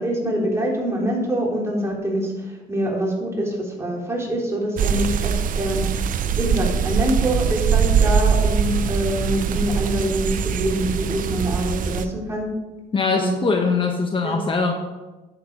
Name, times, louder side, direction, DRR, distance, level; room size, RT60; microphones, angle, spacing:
voice 1, 0.0-12.5 13.2-13.4 14.2-14.4, equal, 15° right, -2 dB, 3.5 m, -25 dB
sound 1, 4.8-12.1, right 7 dB, 55° right, 0.7 m, -22 dB
voice 2, 12.9-14.7, left 4 dB, 30° left, 3 dB, 1.2 m, -21 dB
10.5 x 7.8 x 5.4 m, 1.1 s
cardioid pair, 110°, 17 cm